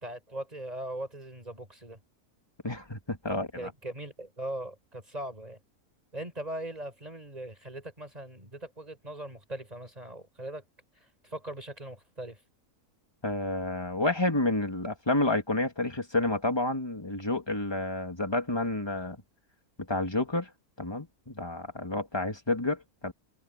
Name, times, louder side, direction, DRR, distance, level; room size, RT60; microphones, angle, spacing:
voice 1, 0.0-2.0 3.3-5.6 6.1-10.6 11.0-12.4, right 1 dB, 25° right, 6.6 m, -40 dB
voice 2, 2.6-3.7 13.2-19.2 19.9-20.5 20.8-23.1, left 2 dB, 15° left, 2.6 m, -30 dB
omnidirectional pair, 1.6 m